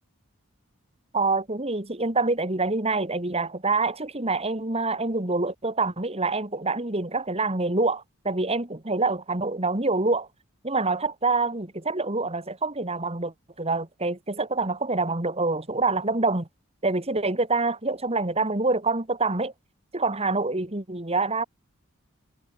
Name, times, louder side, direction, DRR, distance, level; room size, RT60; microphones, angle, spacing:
voice 1, 1.1-10.3 10.6-16.5 16.8-19.5 19.9-21.4, right 3 dB, 30° right, 2.2 m, -26 dB
head